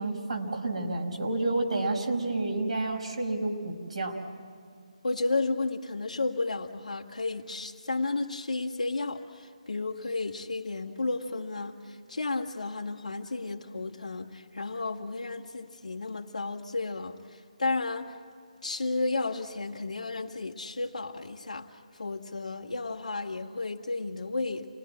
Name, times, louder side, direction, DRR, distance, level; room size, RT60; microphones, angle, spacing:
voice 1, 0.0-4.2, right 2 dB, 65° right, 1 dB, 5.4 m, -30 dB
voice 2, 5.0-18.2 18.6-21.7 22.0-24.7, left 3 dB, 75° left, 0 dB, 2.1 m, -33 dB
29.0 x 20.0 x 8.7 m, 2.2 s
figure-of-eight pair, 155°, 4 cm